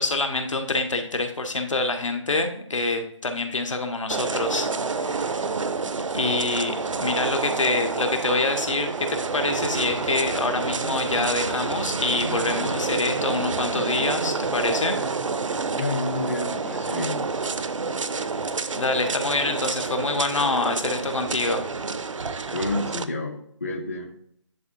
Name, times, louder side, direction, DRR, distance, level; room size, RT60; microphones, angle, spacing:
voice 1, 0.0-5.4 6.1-15.0 18.1-18.3 18.7-21.7, left 3 dB, 80° left, 6 dB, 1.3 m, -26 dB
sound 1, 4.1-23.0, right 4 dB, 75° right, 0.6 m, -28 dB
voice 2, 15.8-17.3 22.5-24.1, left 2 dB, 30° left, 3 dB, 0.6 m, -30 dB
11.0 x 3.6 x 2.6 m, 0.68 s
figure-of-eight pair, 170°, 16 cm